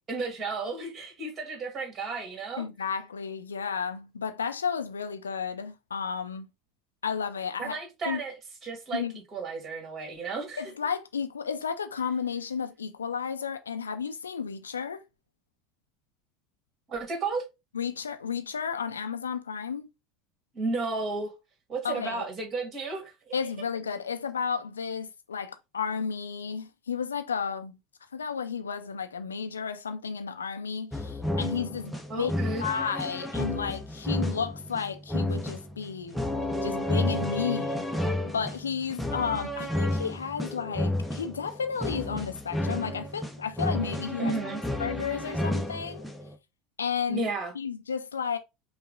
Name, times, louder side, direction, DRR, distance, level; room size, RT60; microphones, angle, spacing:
voice 1, 0.1-2.6 7.6-8.3 8.6-9.0 9.3-10.6 16.9-17.5 20.5-21.3 21.7-23.3 32.1-32.6 44.2-44.6 47.1-47.5, right 3 dB, 30° right, 2.1 m, -33 dB
voice 2, 2.6-6.5 7.0-7.8 8.1-8.2 8.9-9.1 10.6-15.0 17.7-19.9 21.8-22.3 23.3-27.8 28.1-32.3 32.6-36.2 36.6-37.9 38.2-44.3 44.8-46.0 46.8-47.3 47.5-48.4, left 6 dB, 75° left, 0.5 m, -32 dB
sound 1, 30.9-46.3, left 1 dB, 5° left, 0.9 m, -31 dB
5.5 x 2.4 x 3.8 m
figure-of-eight pair, 75°, 0 cm